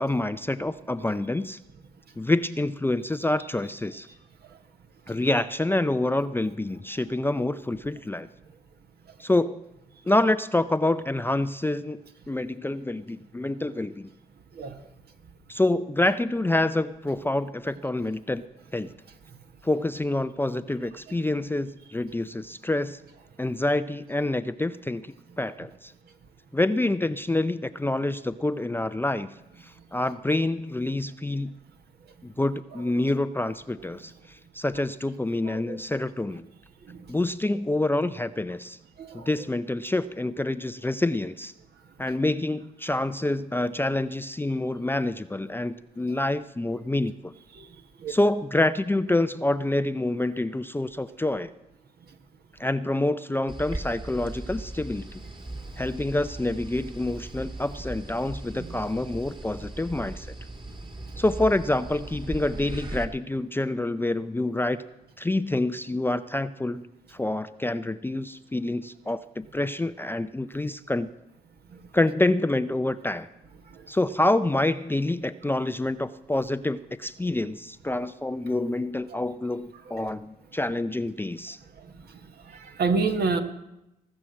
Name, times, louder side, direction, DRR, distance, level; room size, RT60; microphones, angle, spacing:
voice 1, 0.0-1.6 2.2-4.1 5.1-8.3 9.2-9.6 10.1-12.0 12.3-14.1 15.5-18.4 18.7-18.9 19.6-23.0 23.4-25.9 26.5-29.3 29.6-31.6 32.2-36.4 37.1-38.8 39.1-41.5 42.0-47.3 48.1-51.5 52.6-55.2 55.8-60.3 61.2-64.8 65.2-66.8 67.1-71.1 71.9-73.3 73.9-81.6, left 2 dB, 10° left, 12 dB, 0.5 m, -27 dB
voice 2, 35.4-35.8 36.9-37.0 39.0-39.3 47.5-47.7 48.0-48.1 58.6-58.7 73.7-73.8 79.9-80.1 81.8-81.9 82.6-83.4, right 4 dB, 60° right, 5 dB, 1.5 m, -28 dB
sound 1, 53.5-63.0, right 2 dB, 25° right, 1.9 m, -38 dB
18.5 x 6.2 x 7.7 m, 0.89 s
hypercardioid pair, 50°, 19 cm